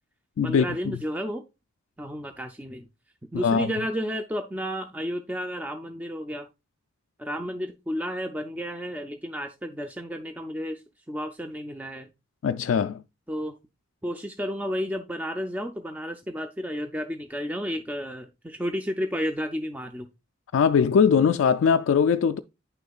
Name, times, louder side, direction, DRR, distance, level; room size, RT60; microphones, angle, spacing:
voice 1, 0.4-1.4 2.0-2.9 3.3-6.5 7.2-10.8 11.1-12.1 13.3-13.6 14.0-20.1, equal, 10° right, 0.4 m, -32 dB
voice 2, 3.3-3.7 12.4-13.0 20.5-22.4, left 6 dB, 70° left, 0.3 m, -21 dB
9.3 x 6.5 x 2.4 m
head